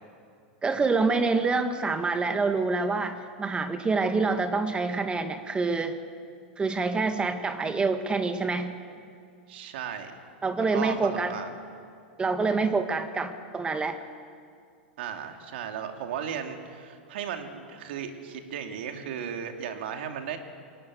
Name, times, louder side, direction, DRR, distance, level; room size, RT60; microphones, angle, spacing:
voice 1, 0.6-6.0 6.6-8.7 10.4-11.3 12.2-14.0, right 4 dB, 15° right, 8 dB, 1.4 m, -26 dB
voice 2, 9.5-10.1 10.7-11.5 15.0-20.4, right 8 dB, 70° right, 5 dB, 2.6 m, -35 dB
21.0 x 17.0 x 9.3 m, 2.3 s
hypercardioid pair, 110°, 6 cm